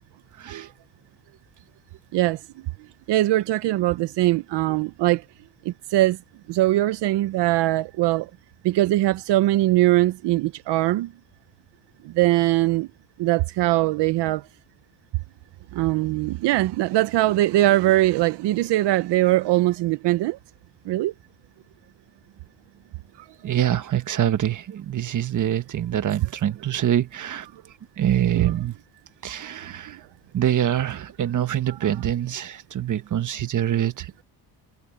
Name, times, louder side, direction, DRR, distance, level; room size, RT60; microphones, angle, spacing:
voice 1, 3.1-5.2 5.7-6.2 6.5-8.3 8.6-11.1 12.0-12.9 13.2-14.4 15.7-20.4 20.9-21.1 28.3-28.5 31.7-31.8, right 16 dB, 80° right, 0.8 m, -21 dB
voice 2, 23.4-27.5 28.0-28.7 29.2-30.0 30.3-34.2, right 11 dB, 45° right, 1.4 m, -25 dB
cardioid pair, 120°, 41 cm